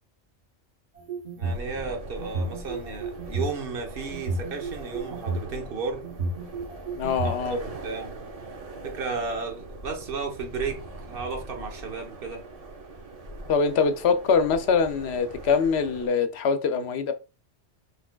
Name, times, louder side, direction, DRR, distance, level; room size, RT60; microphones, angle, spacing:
sound 1, 1.0-1.6 2.2-3.6 4.1-5.4 6.0-7.3, right 3 dB, 80° right, 1.6 m, -31 dB
sound 2, 1.4-16.1, right 2 dB, 35° right, 0.8 m, -41 dB
voice 1, 1.4-6.0 7.2-8.2 8.8-10.8 11.1-12.4, right 4 dB, 55° right, 1.2 m, -33 dB
voice 2, 7.0-7.6 13.5-17.1, left 5 dB, 70° left, 0.9 m, -23 dB
6.0 x 3.3 x 2.3 m
omnidirectional pair, 1.2 m